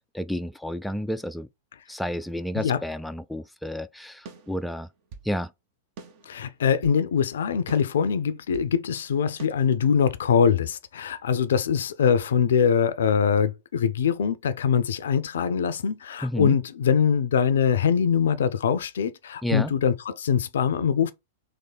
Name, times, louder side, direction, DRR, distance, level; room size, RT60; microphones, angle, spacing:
voice 1, 0.1-1.5 1.9-4.9 5.2-5.5 16.2-16.6 19.4-19.7, equal, ahead, 0.3 m, -30 dB
sound 1, 4.3-5.3 6.0-7.0 7.7-8.8 9.4-9.5, right 5 dB, 50° right, 0.9 m, -45 dB
voice 2, 6.3-21.1, left 7 dB, 70° left, 0.5 m, -23 dB
3.4 x 3.2 x 4.1 m
figure-of-eight pair, 100°, 0 cm